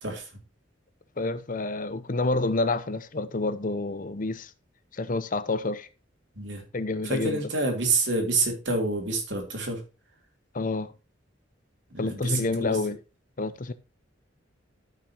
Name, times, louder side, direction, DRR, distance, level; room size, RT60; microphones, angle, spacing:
voice 1, 0.0-0.3 6.3-6.6 7.0-9.8 11.9-12.8, right 3 dB, 65° right, 3.2 m, -28 dB
voice 2, 1.2-4.5 4.9-5.9 6.7-7.4 10.5-10.9 12.0-13.0 13.4-13.7, left 2 dB, 45° left, 0.8 m, -28 dB
13.5 x 6.1 x 2.9 m
head